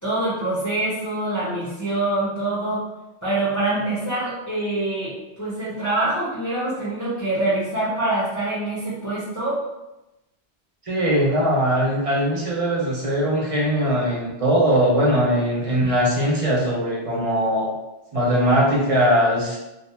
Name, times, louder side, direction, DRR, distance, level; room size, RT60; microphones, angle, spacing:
voice 1, 0.0-2.8 3.2-9.6, right 2 dB, 20° left, -9 dB, 0.6 m, -25 dB
voice 2, 10.9-17.7 18.1-19.6, equal, 50° right, -4 dB, 0.4 m, -20 dB
2.3 x 2.0 x 2.9 m, 0.97 s
omnidirectional pair, 1.1 m